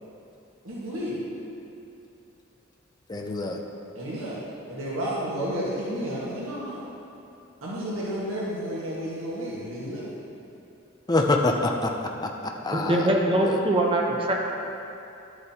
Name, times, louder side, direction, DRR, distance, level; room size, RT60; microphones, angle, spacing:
voice 1, 0.6-1.2 3.9-6.8 7.6-10.1, equal, 90° right, -8 dB, 1.5 m, -31 dB
voice 2, 3.1-3.6 11.1-11.9 12.2-12.3 12.6-13.1 13.4-13.6, left 2 dB, 20° left, 2 dB, 0.5 m, -25 dB
voice 3, 12.7-14.3, right 1 dB, 25° right, -1 dB, 0.8 m, -23 dB
11.5 x 7.9 x 2.8 m, 2.8 s
head